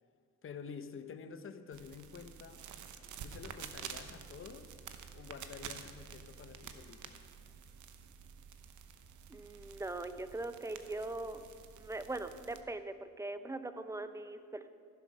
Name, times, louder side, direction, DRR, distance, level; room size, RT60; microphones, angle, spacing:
voice 1, 0.4-2.7 3.2-4.7 5.1-7.2, left 6 dB, 45° left, 9 dB, 0.9 m, -49 dB
sound 1, 1.7-12.6, right 7 dB, 75° right, 0.9 m, -50 dB
voice 2, 9.3-11.4 11.8-14.7, right 2 dB, 10° right, 10 dB, 0.6 m, -41 dB
15.0 x 6.9 x 5.5 m, 2.2 s
cardioid pair, 90°, 30 cm